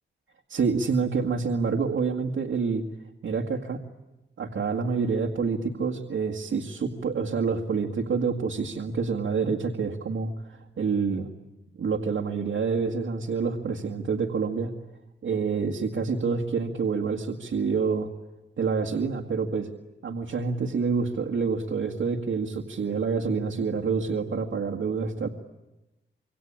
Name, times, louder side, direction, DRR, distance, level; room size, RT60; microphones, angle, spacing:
voice 1, 0.5-2.8 3.2-3.8 4.4-11.3 11.7-14.7 15.2-18.1 18.6-19.7 20.0-25.3, right 5 dB, 75° right, 0 dB, 2.0 m, -27 dB
26.5 x 24.5 x 8.8 m, 1.0 s
wide cardioid pair, 125°, 21 cm